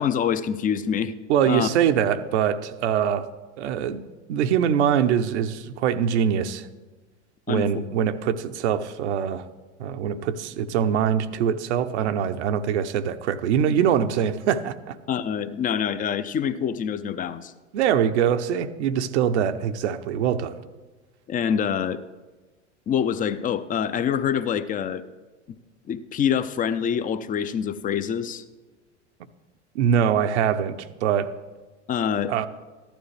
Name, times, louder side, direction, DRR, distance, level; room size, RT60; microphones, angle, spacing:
voice 1, 0.0-1.1 1.5-1.7 7.5-7.7 15.1-17.5 21.3-22.0 22.9-25.0 25.9-28.4 31.9-32.5, left 8 dB, 25° left, 13 dB, 0.5 m, -25 dB
voice 2, 1.3-3.3 3.6-4.0 4.3-6.7 7.5-9.4 9.8-15.0 17.7-20.6 29.7-31.3 32.3-32.5, right 8 dB, 70° right, 10 dB, 0.8 m, -23 dB
14.0 x 12.0 x 3.3 m, 1.3 s
hypercardioid pair, 95°, 36 cm